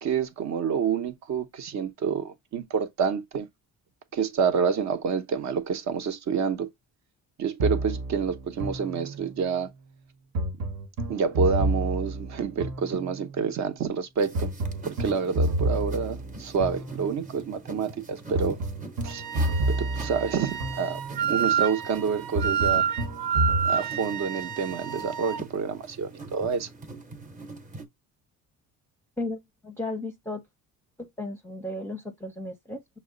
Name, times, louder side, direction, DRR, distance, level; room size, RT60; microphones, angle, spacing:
voice 1, 0.0-3.5 4.1-6.7 7.4-9.7 11.1-14.5 14.8-18.6 19.0-19.2 19.7-21.0 21.3-22.8 23.6-26.7, right 6 dB, 50° right, 0.8 m, -28 dB
sound 1, 7.6-9.5 10.3-13.4 14.3-17.4 18.3-21.4 22.3-23.7, right 1 dB, 65° right, 1.1 m, -30 dB
sound 2, 14.2-27.9, right 2 dB, 20° right, 0.9 m, -44 dB
Wind instrument woodwind instrument, 19.1-25.4, right 8 dB, 85° right, 0.6 m, -29 dB
voice 2, 29.2-30.4 31.0-32.8, left 2 dB, 5° left, 0.6 m, -35 dB
6.2 x 2.1 x 3.7 m
cardioid pair, 115°, 35 cm